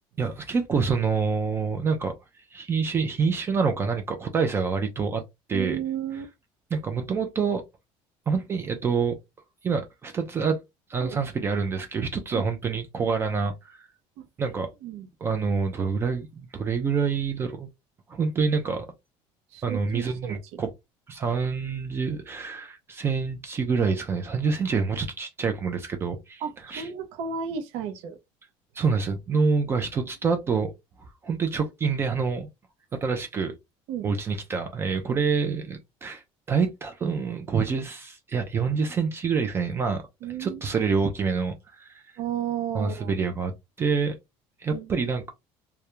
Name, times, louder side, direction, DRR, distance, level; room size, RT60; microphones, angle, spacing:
voice 1, 0.2-2.1 2.5-5.2 5.5-5.8 6.7-7.6 8.3-9.2 9.6-10.6 10.9-13.9 14.4-14.7 15.2-17.7 18.1-18.9 19.6-20.7 21.1-26.4 26.7-26.9 28.7-30.7 31.0-32.5 32.9-33.5 34.0-36.2 36.5-40.1 40.4-42.1 42.7-43.5 43.8-44.2 44.6-45.3, right 5 dB, 20° right, 0.3 m, -27 dB
voice 2, 5.5-6.3 11.0-11.2 12.3-12.5 14.2-14.3 14.8-15.1 19.5-20.6 26.4-28.2 33.9-34.1 35.1-35.2 40.2-40.7 42.2-43.2 44.7-44.9, right 8 dB, 70° right, 0.6 m, -33 dB
2.3 x 2.1 x 2.9 m
cardioid pair, 160°, 11 cm